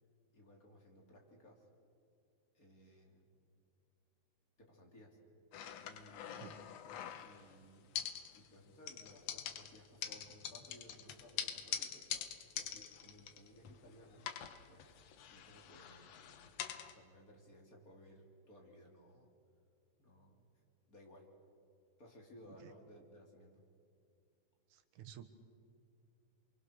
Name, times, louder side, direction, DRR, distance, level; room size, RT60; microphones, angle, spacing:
voice 1, 0.3-1.7 2.5-3.3 4.6-5.2 5.8-6.6 7.2-8.0 8.3-14.3 14.7-15.0 15.3-19.3 20.0-21.3 22.0-23.6, equal, 25° left, 1 dB, 3.2 m, -60 dB
sound 1, 5.5-7.5 7.9-8.6 8.9-13.9 14.2-16.9, left 9 dB, 65° left, 2.0 m, -45 dB
voice 2, 24.7-25.2, right 10 dB, 75° right, 9 dB, 2.6 m, -52 dB
28.5 x 24.5 x 6.5 m, 2.4 s
omnidirectional pair, 3.6 m